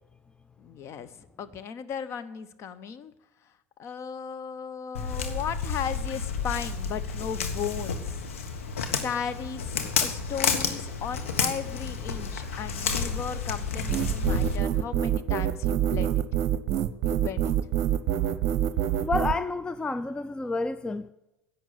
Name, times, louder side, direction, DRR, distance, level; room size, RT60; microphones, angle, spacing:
voice 1, 0.6-1.1 1.4-3.1 3.8-8.2 9.0-16.2 17.0-17.5, left 7 dB, 40° left, 0.9 m, -36 dB
Walk footsteps, 4.9-14.6, left 5 dB, 70° left, 1.4 m, -30 dB
sound 1, 13.9-19.4, right 11 dB, 45° right, 0.8 m, -26 dB
voice 2, 19.0-21.1, left 3 dB, 10° left, 0.4 m, -29 dB
11.0 x 8.0 x 8.3 m
figure-of-eight pair, 75°, 7 cm